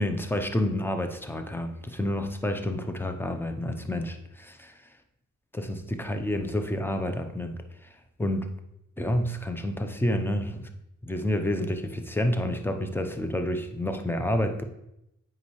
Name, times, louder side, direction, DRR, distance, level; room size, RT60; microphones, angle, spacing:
voice 1, 0.0-4.7 5.5-7.6 8.2-8.5 9.0-10.7 11.0-14.6, left 1 dB, 5° left, 7 dB, 0.8 m, -29 dB
8.3 x 5.2 x 3.2 m, 0.84 s
cardioid pair, 70°, 32 cm